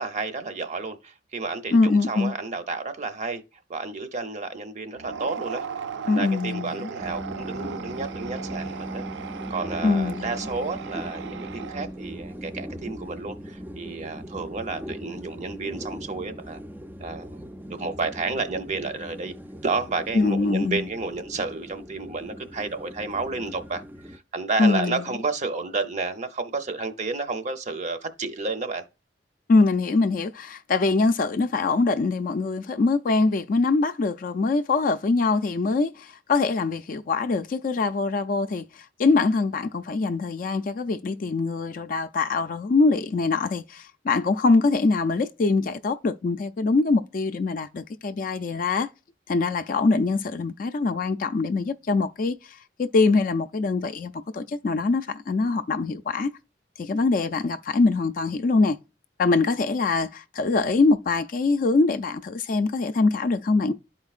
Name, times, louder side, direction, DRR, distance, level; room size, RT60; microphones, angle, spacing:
voice 1, 0.0-3.4 3.7-5.7 6.1-9.0 9.5-16.6 17.0-17.4 17.6-19.3 19.6-23.8 24.1-28.8, right 3 dB, 40° right, 0.7 m, -31 dB
voice 2, 1.7-2.3 6.1-6.9 9.8-10.3 20.1-20.8 24.6-25.0 29.5-38.6 39.0-48.9 49.3-52.4 52.8-56.3 56.8-58.8 59.2-63.7, left 3 dB, 50° left, 0.4 m, -23 dB
sound 1, 4.9-12.1, right 6 dB, 75° right, 0.4 m, -37 dB
sound 2, 7.0-24.2, equal, 10° right, 0.4 m, -39 dB
11.5 x 4.4 x 2.4 m
head